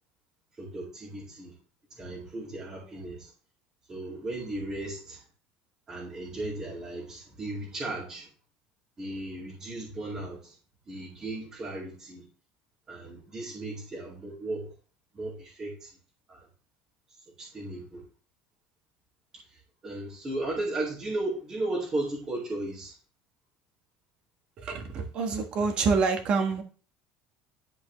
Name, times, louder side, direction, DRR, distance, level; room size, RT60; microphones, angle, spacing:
voice 1, 0.6-1.5 1.9-3.3 3.9-5.2 5.9-8.3 9.0-10.6 10.9-12.3 12.9-14.7 15.1-16.0 16.3-16.5 17.3-18.0 19.3-23.0, right 2 dB, 20° right, -6 dB, 2.2 m, -36 dB
voice 2, 24.6-26.6, right 4 dB, 35° right, 5 dB, 1.3 m, -27 dB
11.0 x 4.5 x 3.1 m, 0.38 s
cardioid pair, 170°, 3 cm